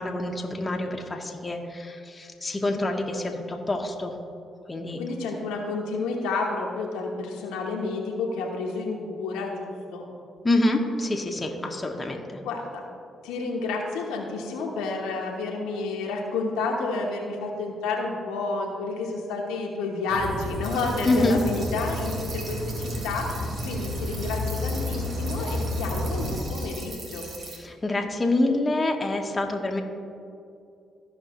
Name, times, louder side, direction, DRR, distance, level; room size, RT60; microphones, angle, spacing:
voice 1, 0.0-4.1 4.7-5.0 10.4-12.2 21.0-21.4 27.6-29.8, left 2 dB, 25° left, 2 dB, 1.2 m, -26 dB
voice 2, 5.0-10.1 12.4-12.8 13.2-23.3 23.6-27.3, left 3 dB, 90° left, 0 dB, 1.1 m, -30 dB
sound 1, 20.1-26.4, left 1 dB, 75° right, 1.1 m, -31 dB
sound 2, 20.6-27.6, right 2 dB, 60° right, 1.9 m, -41 dB
14.5 x 5.3 x 3.1 m, 2.6 s
supercardioid pair, 55°, 0 cm